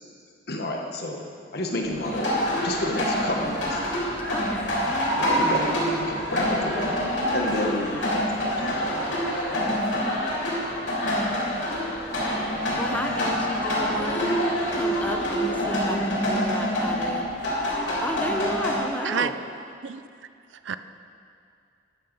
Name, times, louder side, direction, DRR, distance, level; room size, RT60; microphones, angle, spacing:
voice 1, 0.5-1.2 1.5-3.8 4.9-7.0 7.3-8.9, left 1 dB, 55° left, 1 dB, 1.3 m, -30 dB
sound 1, 1.8-18.8, equal, 85° left, 3.3 m, -26 dB
voice 2, 4.3-4.7 7.9-8.2 9.5-10.2 12.8-14.4 14.7-17.3 18.0-19.3, equal, 10° left, 3 dB, 0.8 m, -33 dB
voice 3, 19.0-19.3 19.8-20.0 20.5-20.8, right 7 dB, 85° right, 12 dB, 0.5 m, -28 dB
12.5 x 8.8 x 5.5 m, 2.4 s
head